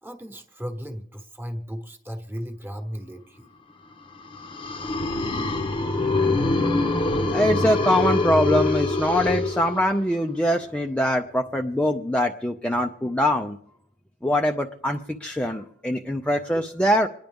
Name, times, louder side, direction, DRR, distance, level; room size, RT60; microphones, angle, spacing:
voice 1, 0.0-3.5, equal, 10° right, 5 dB, 1.2 m, -35 dB
sound 1, 4.3-10.2, left 2 dB, 25° left, 0.8 m, -24 dB
voice 2, 7.3-13.6 14.2-17.1, left 1 dB, 5° left, 3 dB, 0.5 m, -23 dB
27.0 x 10.5 x 3.5 m, 0.80 s
head